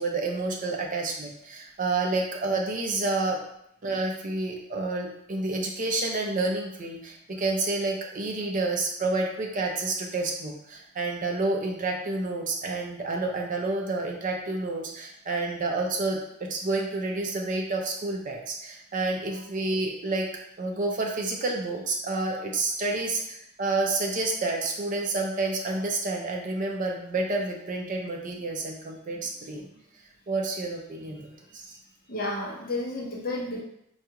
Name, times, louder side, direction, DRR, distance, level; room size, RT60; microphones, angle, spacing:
voice 1, 0.0-3.4 3.8-20.3 20.6-29.7 30.3-31.6, right 2 dB, 35° right, 1 dB, 0.4 m, -29 dB
voice 2, 32.1-33.6, left 2 dB, 40° left, -3 dB, 0.7 m, -31 dB
4.6 x 2.3 x 2.8 m, 0.75 s
head